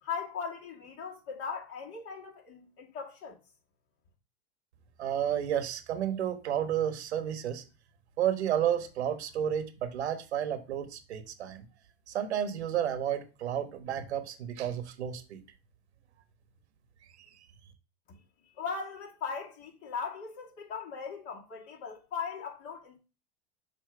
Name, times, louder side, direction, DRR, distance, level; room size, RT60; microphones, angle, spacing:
voice 1, 0.0-3.4 18.6-23.0, left 6 dB, 45° left, 2.2 m, -39 dB
voice 2, 5.0-7.6 8.2-11.6 12.1-15.4, right 10 dB, 85° right, 1.2 m, -31 dB
6.7 x 2.9 x 5.7 m
hypercardioid pair, 105°, 32 cm